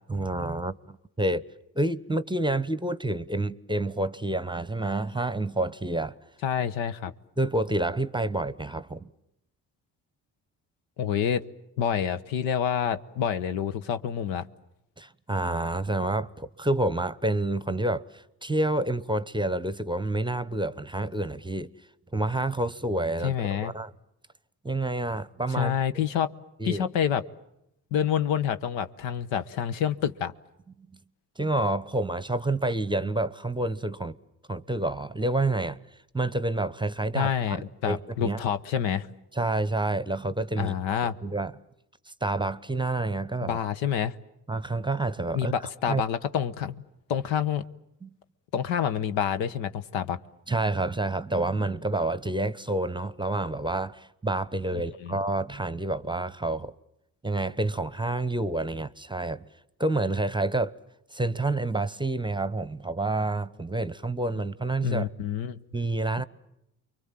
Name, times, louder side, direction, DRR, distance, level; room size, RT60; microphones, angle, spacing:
voice 1, 0.1-1.5 1.7-6.1 7.4-9.1 15.0-21.7 22.1-23.3 23.6-23.9 24.6-26.0 26.6-26.8 30.8-30.9 31.4-34.2 34.5-35.8 36.1-38.4 39.4-40.7 41.0-41.5 42.2-43.6 44.5-45.5 45.9-46.0 48.0-48.1 50.5-56.7 57.2-59.5 59.8-60.8 61.1-65.1 65.7-66.2, right 2 dB, 10° right, 0.9 m, -28 dB
voice 2, 6.4-7.1 11.0-11.4 11.8-14.5 23.2-23.7 25.5-26.3 26.6-27.2 27.9-30.3 37.1-39.1 40.6-41.1 43.4-44.2 45.3-46.8 47.1-47.6 48.5-50.2 54.7-55.2 64.8-65.6, left 8 dB, 75° left, 1.1 m, -28 dB
29.5 x 23.5 x 7.5 m
hypercardioid pair, 50°, 45 cm